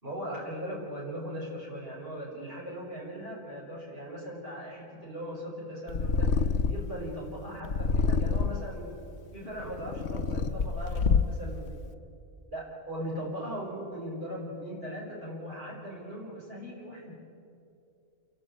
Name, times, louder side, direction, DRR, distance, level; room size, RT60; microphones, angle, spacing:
voice 1, 0.0-9.0 9.3-11.8 12.5-17.1, equal, 45° right, -7 dB, 5.4 m, -39 dB
Purr, 5.9-7.0 7.6-8.7 9.4-11.5, left 5 dB, 55° left, 1.1 m, -27 dB
29.5 x 11.0 x 8.6 m, 2.5 s
omnidirectional pair, 1.5 m